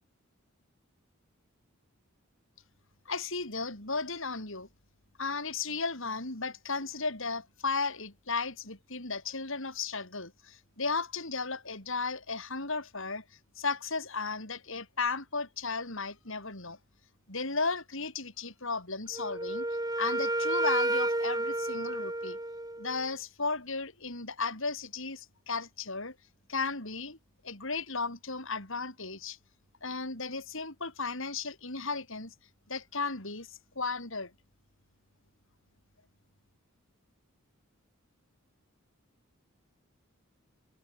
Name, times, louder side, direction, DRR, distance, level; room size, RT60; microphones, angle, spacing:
voice 1, 3.0-4.7 5.2-13.2 13.6-16.8 17.3-19.7 20.0-22.4 22.8-26.1 26.5-27.2 27.4-29.4 29.8-32.3 32.7-34.3, left 4 dB, 65° left, 6.8 m, -35 dB
Wind instrument woodwind instrument, 19.1-23.0, right 2 dB, 15° right, 7.0 m, -31 dB
head